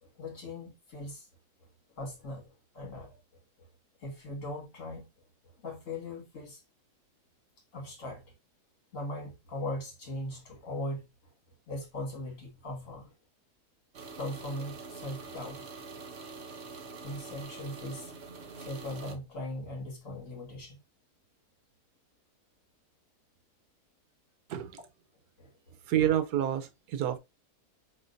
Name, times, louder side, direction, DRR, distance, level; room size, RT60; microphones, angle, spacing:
voice 1, 0.0-1.3 2.0-3.7 4.0-5.1 5.4-6.6 7.7-8.3 8.9-11.1 11.7-13.1 14.2-15.7 17.0-18.1 18.5-20.8 25.4-25.8, left 1 dB, 55° left, 2.2 m, -40 dB
sound 1, 13.9-19.2, right 4 dB, 50° right, 1.0 m, -45 dB
voice 2, 25.9-27.2, right 11 dB, 80° right, 1.3 m, -28 dB
5.4 x 3.7 x 2.6 m
omnidirectional pair, 1.7 m